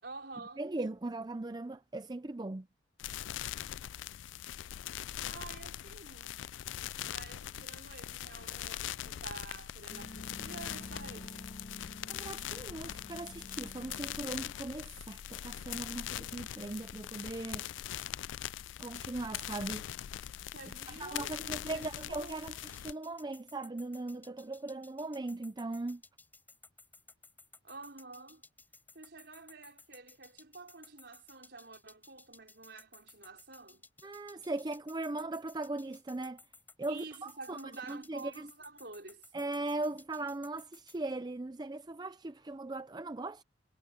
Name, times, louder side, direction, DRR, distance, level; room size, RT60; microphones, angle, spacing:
voice 1, 0.0-0.6 5.3-6.5 7.0-11.5 20.5-22.5 27.6-28.4 28.9-33.9 36.9-39.3, right 3 dB, 65° right, 4.8 m, -49 dB
voice 2, 0.6-2.7 12.1-17.6 18.8-19.9 21.0-26.0 34.0-36.4 36.8-37.6 37.9-38.5 39.3-43.4, right 2 dB, 20° right, 0.5 m, -39 dB
sound 1, 3.0-22.9, left 11 dB, 90° left, 0.4 m, -42 dB
sound 2, 9.9-14.5, left 1 dB, 35° left, 1.2 m, -50 dB
sound 3, 21.8-41.0, left 3 dB, 10° left, 6.3 m, -58 dB
head